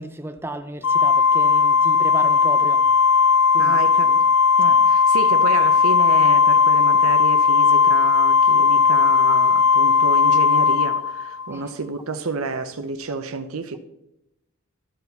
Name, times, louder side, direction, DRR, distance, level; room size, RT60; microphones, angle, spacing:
voice 1, 0.0-2.8 3.5-3.8 4.1-4.2 4.6-4.8 11.5-11.6, right 1 dB, 10° right, 0.4 m, -34 dB
Organ, 0.8-11.6, left 5 dB, 70° left, 0.4 m, -17 dB
voice 2, 3.6-4.1 4.6-13.8, right 4 dB, 75° right, 0.7 m, -30 dB
12.5 x 4.6 x 4.1 m
head